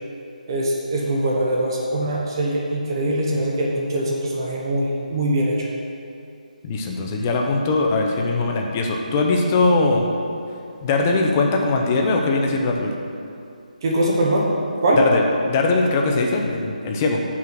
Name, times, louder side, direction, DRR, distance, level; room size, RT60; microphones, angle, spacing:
voice 1, 0.5-5.5 13.8-14.5 14.8-15.0, right 1 dB, 30° right, -3 dB, 0.9 m, -22 dB
voice 2, 6.6-10.0 10.8-12.9 15.0-17.2, left 3 dB, 20° left, 1 dB, 0.6 m, -21 dB
6.1 x 5.5 x 6.0 m, 2.6 s
hypercardioid pair, 170°, 5 cm